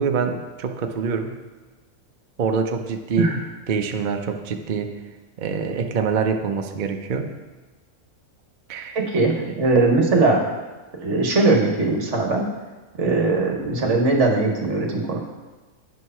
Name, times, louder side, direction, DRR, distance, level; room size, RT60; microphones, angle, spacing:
voice 1, 0.0-1.4 2.4-3.3 3.7-4.9 5.4-7.3 8.7-9.0, right 5 dB, 80° right, 5 dB, 0.4 m, -25 dB
voice 2, 8.9-10.4 11.0-12.5 13.0-15.2, right 3 dB, 50° right, 1 dB, 1.4 m, -20 dB
9.2 x 4.7 x 5.4 m, 1.2 s
omnidirectional pair, 1.6 m